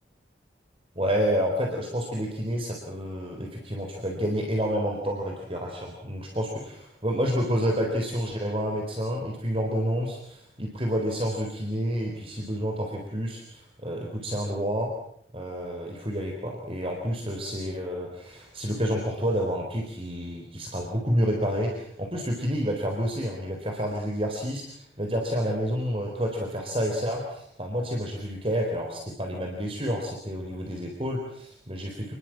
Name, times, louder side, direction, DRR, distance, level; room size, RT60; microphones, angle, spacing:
voice 1, 1.0-14.9 15.3-32.1, equal, 30° right, 1 dB, 4.1 m, -29 dB
27.5 x 21.0 x 7.5 m, 0.69 s
head